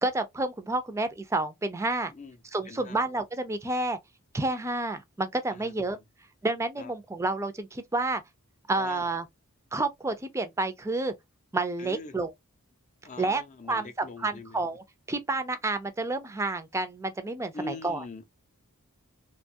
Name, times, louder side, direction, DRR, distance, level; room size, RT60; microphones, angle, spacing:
voice 1, 0.0-2.1 2.5-4.0 4.3-6.0 6.4-8.2 8.7-9.3 9.7-11.1 11.5-12.3 13.2-13.4 13.7-18.0, right 2 dB, 15° right, 0.4 m, -30 dB
voice 2, 2.7-3.0 5.6-5.7 6.8-6.9 8.7-9.0 11.8-12.2 13.0-14.6 17.5-18.3, left 2 dB, 35° left, 0.5 m, -42 dB
2.9 x 2.2 x 2.6 m
head